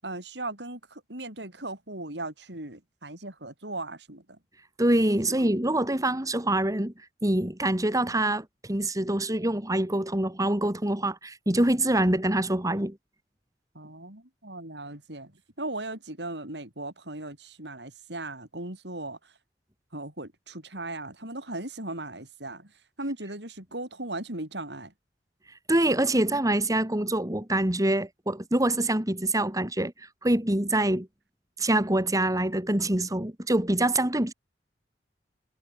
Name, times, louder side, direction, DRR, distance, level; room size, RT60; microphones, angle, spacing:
voice 1, 0.0-4.4 5.3-5.4 13.7-19.3 19.9-24.9, right 2 dB, 70° right, 6.9 m, -38 dB
voice 2, 4.8-6.9 7.2-13.0 25.7-31.1 31.6-34.3, right 1 dB, 20° right, 2.5 m, -25 dB
head